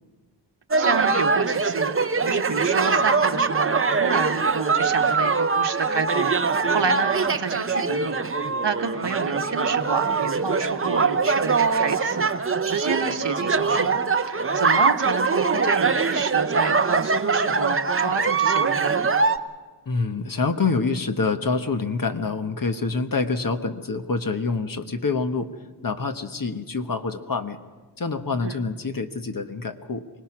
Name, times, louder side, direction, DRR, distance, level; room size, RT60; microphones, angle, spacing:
sound 1, 0.7-19.4, right 4 dB, 30° right, 0.7 m, -22 dB
voice 1, 0.8-19.1 28.4-28.6, right 5 dB, 70° right, 5 dB, 1.4 m, -29 dB
voice 2, 19.9-25.5 25.8-27.6 28.0-30.2, left 4 dB, 50° left, 7 dB, 1.2 m, -26 dB
24.5 x 19.0 x 6.1 m, 1.4 s
wide cardioid pair, 95°, 44 cm